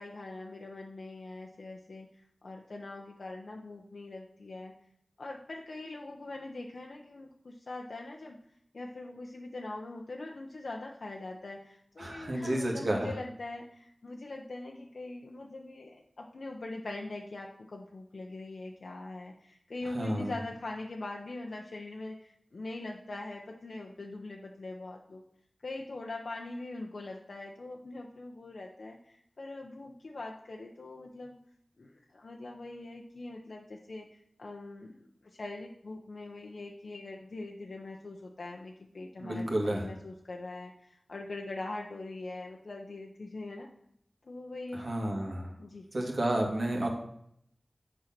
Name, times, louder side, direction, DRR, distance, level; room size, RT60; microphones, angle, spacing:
voice 1, 0.0-4.7 5.2-8.4 8.7-25.2 25.6-31.4 31.8-43.7 44.2-44.9 45.6-45.9, left 2 dB, 80° left, 0 dB, 0.7 m, -42 dB
voice 2, 12.0-13.1 19.9-20.3 39.2-39.9 44.7-45.5 45.9-46.9, right 1 dB, 65° right, 0 dB, 2.0 m, -31 dB
7.7 x 4.5 x 5.9 m, 0.70 s
wide cardioid pair, 55°, 0 cm